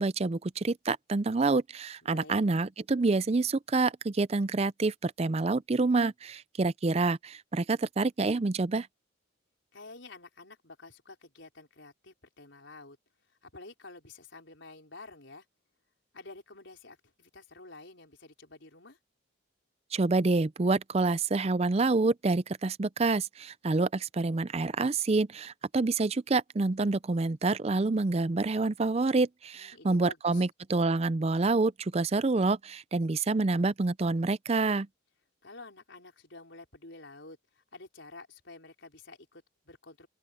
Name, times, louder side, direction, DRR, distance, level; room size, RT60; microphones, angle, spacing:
voice 1, 0.0-8.9 19.9-34.9, right 3 dB, 30° right, 0.4 m, -27 dB
voice 2, 2.0-2.4 9.7-13.0 13.4-15.5 16.1-19.0 29.5-30.5 35.4-40.1, left 3 dB, 65° left, 4.6 m, -50 dB
open air
head